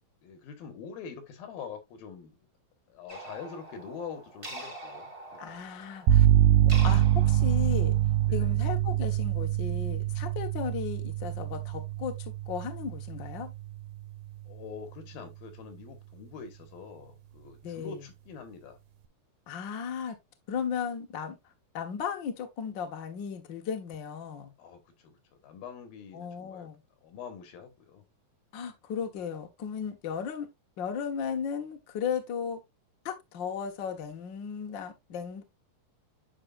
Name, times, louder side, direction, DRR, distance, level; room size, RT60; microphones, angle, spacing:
voice 1, 0.2-2.5 2.9-5.6 6.7-6.8 8.2-8.5 14.5-18.8 24.6-25.1 25.4-26.7 27.0-28.0, left 6 dB, 90° left, 3.3 m, -44 dB
sound 1, 3.1-8.3, right 1 dB, 15° right, 1.3 m, -45 dB
voice 2, 5.4-6.3 6.8-7.9 8.3-13.5 17.6-18.0 19.5-20.1 20.5-21.4 21.7-24.5 26.1-26.8 28.5-30.5 30.8-32.6 33.0-35.4, left 7 dB, 65° left, 1.1 m, -35 dB
sound 2, 6.1-13.8, right 12 dB, 90° right, 2.7 m, -25 dB
9.8 x 5.1 x 2.5 m
omnidirectional pair, 4.1 m